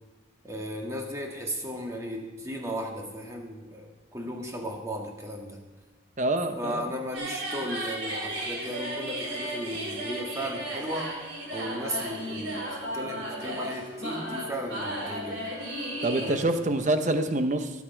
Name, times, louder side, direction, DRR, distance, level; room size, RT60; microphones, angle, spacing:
voice 1, 0.4-5.6 6.6-11.2 11.5-15.5 16.2-16.5, equal, 15° right, 1 dB, 1.6 m, -35 dB
voice 2, 6.2-6.9 16.0-17.7, right 2 dB, 35° right, 8 dB, 0.9 m, -26 dB
sound 1, 7.1-16.3, right 1 dB, 65° right, 4.4 m, -34 dB
19.0 x 8.5 x 4.6 m, 1.3 s
head